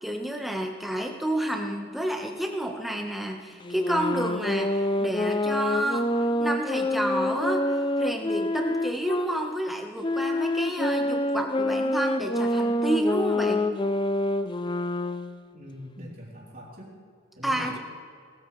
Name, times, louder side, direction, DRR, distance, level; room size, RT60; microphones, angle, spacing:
voice 1, 0.0-6.1 6.4-13.6 17.4-17.8, right 1 dB, ahead, 1 dB, 1.2 m, -30 dB
sound 1, 3.6-9.3 10.0-15.4, left 1 dB, 20° left, 0.4 m, -26 dB
voice 2, 15.5-16.9 17.4-17.8, equal, 40° right, -4 dB, 3.6 m, -43 dB
20.0 x 13.5 x 3.3 m, 2.2 s
head